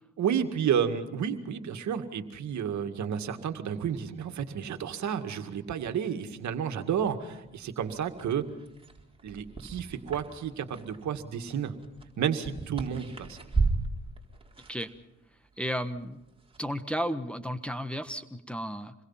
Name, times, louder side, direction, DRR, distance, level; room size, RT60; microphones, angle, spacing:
voice 1, 0.2-8.5 9.2-11.7 12.2-13.4, right 8 dB, 70° right, 7 dB, 2.1 m, -31 dB
sound 1, 6.8-16.7, right 4 dB, 20° right, 4.2 m, -37 dB
voice 2, 15.6-16.2 16.6-18.9, equal, 5° left, 6 dB, 1.2 m, -33 dB
27.0 x 21.5 x 5.8 m, 0.93 s
cardioid pair, 90°, 30 cm